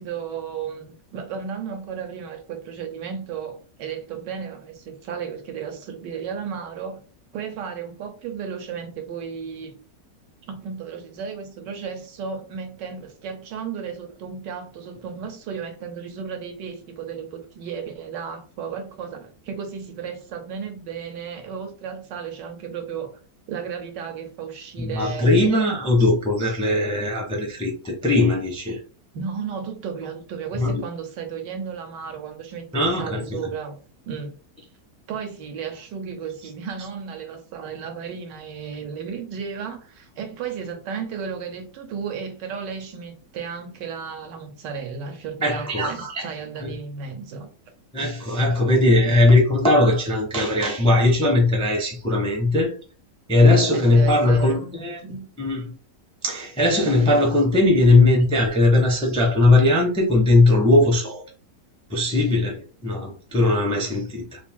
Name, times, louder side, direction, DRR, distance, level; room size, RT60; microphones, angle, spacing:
voice 1, 0.0-7.0 7.3-9.7 10.5-23.2 23.5-25.3 26.0-26.1 29.1-33.8 34.1-34.4 35.1-47.5 53.7-55.3, right 6 dB, 80° right, 1.4 m, -34 dB
voice 2, 24.8-28.8 30.6-30.8 32.7-33.5 45.4-46.3 46.6-46.7 47.9-52.8 53.3-55.0 55.4-55.7 56.2-61.2 61.9-64.4, left 2 dB, 5° left, 0.4 m, -19 dB
3.2 x 2.6 x 3.5 m
omnidirectional pair, 1.9 m